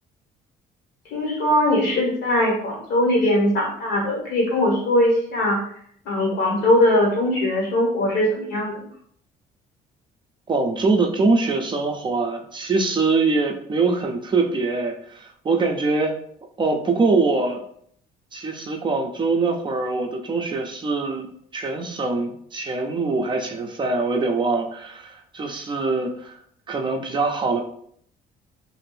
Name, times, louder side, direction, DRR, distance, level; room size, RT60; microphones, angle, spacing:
voice 1, 1.1-5.6 6.0-8.8, left 1 dB, 80° left, -3 dB, 1.4 m, -20 dB
voice 2, 10.5-16.1 16.6-17.6 18.3-26.4 26.7-27.6, right 3 dB, 30° right, 3 dB, 0.4 m, -23 dB
2.6 x 2.5 x 3.3 m, 0.65 s
cardioid pair, 110°, 17 cm